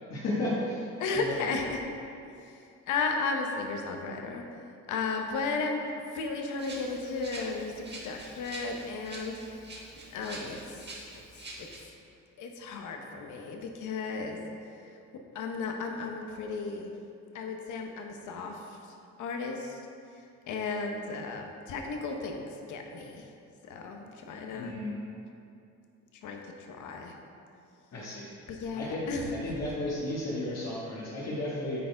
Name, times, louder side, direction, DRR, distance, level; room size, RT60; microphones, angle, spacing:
voice 1, 0.1-1.6 24.5-25.0 27.9-28.3 28.7-29.0 29.3-31.8, left 1 dB, 60° left, -7 dB, 1.6 m, -33 dB
voice 2, 1.0-1.8 2.2-2.6 2.9-4.4 4.9-9.7 10.1-10.8 11.6-11.7 12.4-14.4 15.3-16.9 17.3-19.8 20.1-20.2 20.5-23.2 23.6-24.7 26.2-26.4 26.7-27.1 28.5-29.3, left 4 dB, 80° left, 3 dB, 1.0 m, -34 dB
Rattle (instrument), 6.6-11.8, right 2 dB, 35° right, 1.6 m, -45 dB
9.0 x 4.4 x 4.6 m, 2.5 s
cardioid pair, 90°, 30 cm